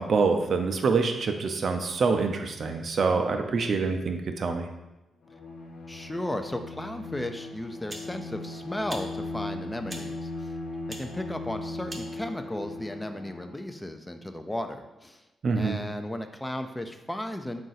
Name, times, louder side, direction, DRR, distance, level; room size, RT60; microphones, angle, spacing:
voice 1, 0.0-4.7 15.4-15.8, right 4 dB, 60° right, 6 dB, 0.4 m, -26 dB
Bowed string instrument, 5.2-13.7, left 2 dB, 70° left, 0.5 m, -38 dB
voice 2, 5.9-10.5 10.9-15.2 15.6-17.6, left 1 dB, 15° left, 7 dB, 0.4 m, -35 dB
sound 1, 6.9-7.1 7.9-8.1 8.9-9.1 9.9-10.1 10.9-11.1 11.9-12.1, right 1 dB, 25° right, 0.7 m, -40 dB
3.7 x 2.5 x 4.0 m, 1.0 s
supercardioid pair, 60°, 0 cm